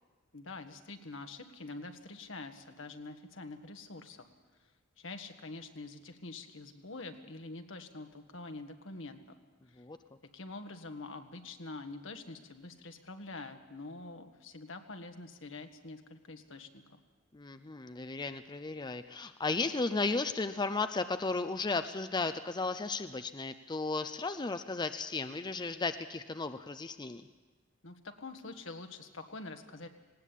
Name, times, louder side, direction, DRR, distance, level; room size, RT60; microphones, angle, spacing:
voice 1, 0.3-4.2 5.0-9.4 9.7-9.8 10.3-17.0 27.8-29.9, left 3 dB, 75° left, 6 dB, 1.7 m, -46 dB
voice 2, 17.3-27.2, left 3 dB, 20° left, 10 dB, 0.5 m, -34 dB
19.5 x 18.0 x 8.4 m, 1.3 s
head